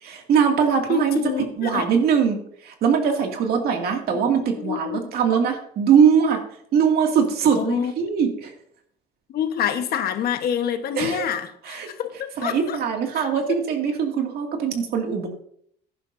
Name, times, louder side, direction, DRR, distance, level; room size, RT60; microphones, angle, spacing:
voice 1, 0.0-1.2 1.6-2.4 2.6-6.4 6.7-8.5 11.0-11.3 11.6-11.9 12.4-15.3, right 7 dB, 65° right, 3 dB, 2.3 m, -21 dB
voice 2, 0.9-1.8 4.3-5.1 7.6-7.9 9.3-12.8 13.1-13.3, left 9 dB, 65° left, 8 dB, 1.3 m, -27 dB
15.5 x 11.0 x 2.7 m, 0.66 s
cardioid pair, 110°, 17 cm